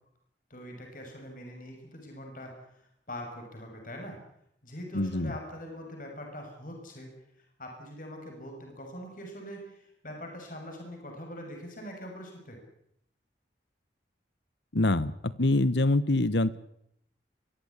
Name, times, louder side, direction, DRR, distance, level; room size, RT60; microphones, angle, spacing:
voice 1, 0.5-4.2 4.6-7.1 7.6-12.6, equal, 45° left, 2 dB, 6.7 m, -43 dB
voice 2, 4.9-5.3 14.7-16.6, left 2 dB, 75° left, 17 dB, 1.2 m, -25 dB
23.5 x 15.5 x 9.9 m, 0.73 s
head